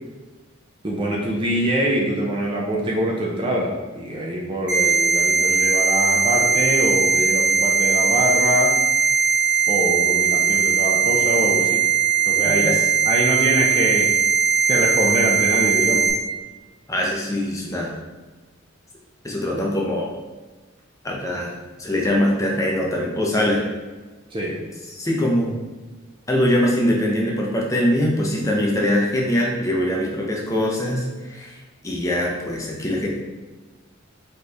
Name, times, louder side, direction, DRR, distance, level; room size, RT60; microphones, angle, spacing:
voice 1, 0.8-8.7 9.7-11.8 12.2-12.6 13.1-14.1 14.7-16.1 24.3-24.6, equal, 25° right, -2 dB, 0.5 m, -24 dB
sound 1, 4.7-16.1, right 6 dB, 5° right, 1.1 m, -19 dB
voice 2, 12.4-12.8 16.9-17.9 19.2-20.1 21.0-21.5 21.8-23.6 24.9-25.6 26.3-33.1, left 1 dB, 15° left, -2 dB, 0.7 m, -22 dB
4.3 x 3.2 x 3.4 m, 1.2 s
head